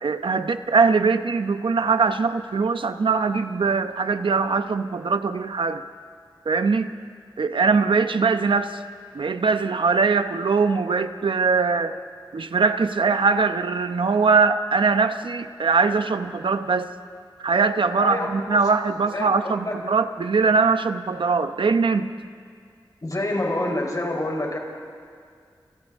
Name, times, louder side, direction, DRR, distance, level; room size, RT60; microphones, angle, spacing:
voice 1, 0.0-5.8 6.5-6.9 7.4-8.8 9.1-12.0 12.3-16.9 17.4-22.1, right 4 dB, 80° right, 9 dB, 0.9 m, -21 dB
voice 2, 18.0-18.6 19.1-19.7 23.0-24.6, left 1 dB, 45° left, 1 dB, 4.2 m, -27 dB
30.0 x 27.5 x 3.6 m, 2.2 s
wide cardioid pair, 60°, 9 cm